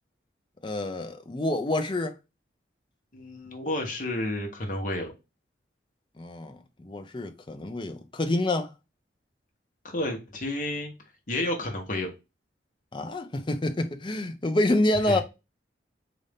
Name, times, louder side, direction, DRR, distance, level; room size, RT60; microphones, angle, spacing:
voice 1, 0.6-2.1 6.2-8.7 12.9-15.2, left 1 dB, 25° left, 0.5 m, -27 dB
voice 2, 3.1-5.1 9.8-10.9 11.3-12.1 15.1-15.2, left 1 dB, 45° left, 1.1 m, -31 dB
3.9 x 2.6 x 3.4 m
head